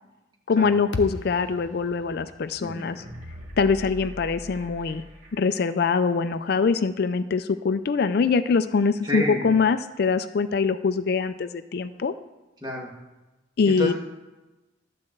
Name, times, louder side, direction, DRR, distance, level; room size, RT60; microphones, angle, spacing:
voice 1, 0.5-3.0 3.6-5.0 5.3-12.1 13.6-13.9, left 5 dB, 55° left, 12 dB, 0.4 m, -23 dB
sound 1, 0.9-5.2, left 2 dB, 80° left, 0.8 m, -40 dB
sound 2, 2.8-5.6 5.9-6.0, left 1 dB, 40° right, 2.0 m, -41 dB
voice 2, 9.0-9.4 12.6-12.9 13.6-13.9, left 1 dB, 25° right, -2 dB, 2.0 m, -28 dB
12.0 x 4.2 x 7.7 m, 1.1 s
head